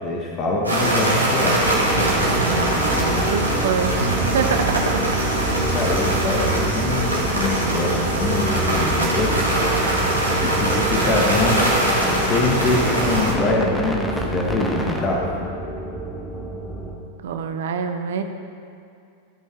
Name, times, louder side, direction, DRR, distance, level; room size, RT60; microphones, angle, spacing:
voice 1, 0.0-1.6 5.7-9.4 10.4-11.6 12.3-15.3, left 2 dB, 30° left, -1 dB, 1.1 m, -24 dB
sound 1, 0.6-13.3, right 1 dB, 85° right, 1.6 m, -22 dB
sound 2, 1.6-17.0, right 1 dB, 5° left, 1.0 m, -27 dB
voice 2, 2.4-5.2 17.2-18.2, right 6 dB, 60° right, 7 dB, 0.6 m, -26 dB
14.5 x 5.6 x 3.4 m, 2.5 s
figure-of-eight pair, 90°, 0 cm